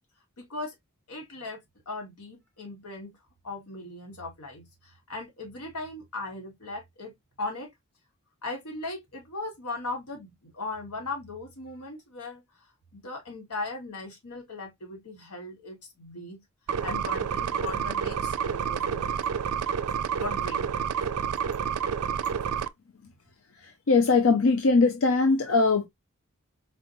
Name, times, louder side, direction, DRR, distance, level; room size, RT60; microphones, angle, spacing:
voice 1, 0.4-0.7 1.1-1.6 1.9-3.2 3.4-7.1 7.4-7.7 8.4-12.4 12.9-16.4 16.8-19.3 20.2-20.7 25.5-25.6, left 2 dB, 90° left, 1.5 m, -38 dB
sound 1, 16.7-22.7, right 7 dB, 80° right, 0.4 m, -29 dB
voice 2, 23.9-25.8, left 4 dB, 65° left, 0.5 m, -21 dB
4.1 x 3.0 x 2.5 m
head